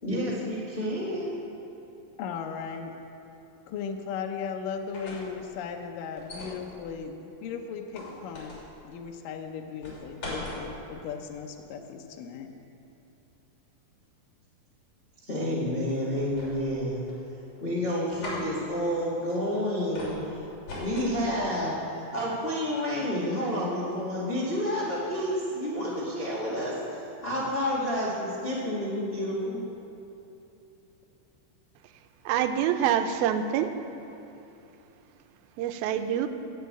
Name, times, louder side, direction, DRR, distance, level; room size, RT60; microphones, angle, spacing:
voice 1, 0.0-1.4 15.2-17.0 17.6-20.2 20.7-26.7 27.2-29.6, equal, 30° left, -8 dB, 1.1 m, -29 dB
voice 2, 2.2-2.9 3.7-8.6 8.8-12.5, left 6 dB, 75° left, 3 dB, 2.3 m, -37 dB
sound 1, 4.7-5.4 6.2-6.6 7.9-8.7 9.8-10.6 16.2-16.8 17.1-17.6 18.1-18.4 20.0-20.2 20.7-21.2, left 2 dB, 45° left, 3.8 m, -39 dB
voice 3, 32.3-33.7 35.6-36.3, right 9 dB, 90° right, 8 dB, 2.5 m, -26 dB
16.0 x 5.6 x 8.1 m, 2.8 s
omnidirectional pair, 4.2 m